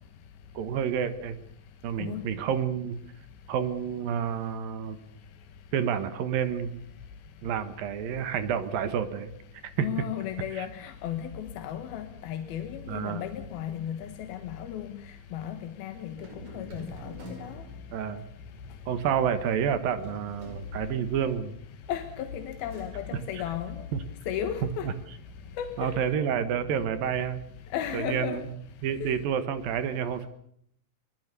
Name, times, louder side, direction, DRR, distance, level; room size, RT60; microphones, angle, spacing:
voice 1, 0.5-1.4 1.8-3.0 3.5-5.0 5.7-6.8 7.4-9.3 9.8-9.9 10.6-10.7 12.9-13.2 17.9-18.3 18.9-21.6 23.9-24.0 24.6-24.9 25.8-27.4 27.9-28.4 28.8-30.3, right 8 dB, 65° right, 11 dB, 2.4 m, -29 dB
voice 2, 9.8-14.9 15.3-16.2 16.5-17.1 17.4-17.6 21.9-23.8 24.3-24.9 25.6-25.9 27.7-28.4 29.0-29.1, left 9 dB, 65° left, 7 dB, 2.6 m, -34 dB
sound 1, 16.1-27.3, right 1 dB, 35° right, 5.6 m, -49 dB
23.0 x 21.5 x 6.9 m, 0.67 s
omnidirectional pair, 5.7 m